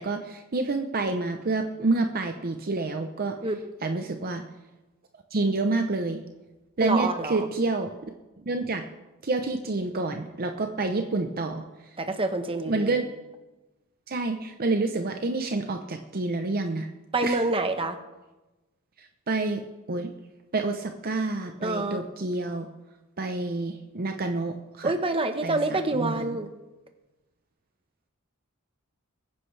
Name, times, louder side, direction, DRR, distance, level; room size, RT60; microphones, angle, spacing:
voice 1, 0.0-3.4 3.8-4.4 5.3-6.2 6.8-8.1 8.5-8.8 9.2-11.6 12.7-13.0 14.1-16.9 17.2-17.4 19.0-19.6 19.9-20.1 20.5-22.7 23.2-24.9 25.4-26.4, right 3 dB, 45° right, 5 dB, 0.8 m, -28 dB
voice 2, 6.8-7.5 12.0-13.0 17.1-18.0 21.6-22.0 24.8-26.5, right 2 dB, 25° right, 7 dB, 1.1 m, -27 dB
22.5 x 9.9 x 3.3 m, 1.1 s
head